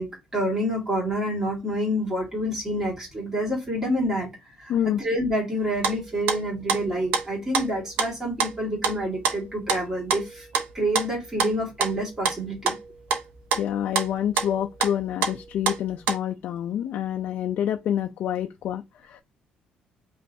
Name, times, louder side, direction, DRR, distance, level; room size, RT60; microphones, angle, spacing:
voice 1, 0.0-4.3 4.6-10.5 10.7-12.7, equal, 15° right, 2.0 m, -28 dB
voice 2, 4.7-5.0 13.6-19.2, left 10 dB, 55° left, 0.5 m, -27 dB
sound 1, 5.6-6.4 6.7-7.3 7.5-8.1 8.4-9.8 10.1-13.2 13.5-14.1 14.4-14.9 15.2-16.2, right 6 dB, 85° right, 0.9 m, -26 dB
5.3 x 3.2 x 2.7 m
cardioid pair, 180°, 3 cm